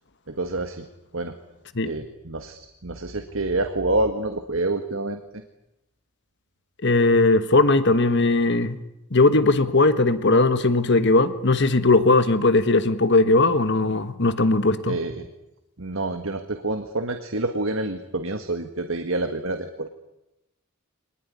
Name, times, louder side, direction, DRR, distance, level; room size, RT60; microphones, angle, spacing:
voice 1, 0.3-0.9 1.1-1.3 1.8-5.4 14.9-15.3 15.8-19.9, right 2 dB, 65° right, 7 dB, 1.7 m, -27 dB
voice 2, 6.8-8.8 9.1-15.0, left 2 dB, 55° left, 11 dB, 1.5 m, -19 dB
24.5 x 20.0 x 9.8 m, 0.92 s
head